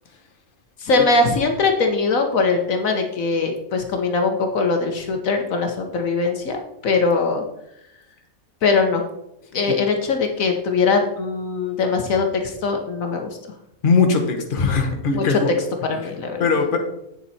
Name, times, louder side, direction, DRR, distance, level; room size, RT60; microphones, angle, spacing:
voice 1, 0.8-7.4 8.6-9.0 9.5-13.3 15.1-15.4 15.9-16.4, left 4 dB, 65° left, 4 dB, 1.3 m, -21 dB
voice 2, 13.8-15.6 16.4-16.8, left 4 dB, 40° left, 3 dB, 1.3 m, -19 dB
8.8 x 7.1 x 4.2 m, 0.81 s
omnidirectional pair, 1.5 m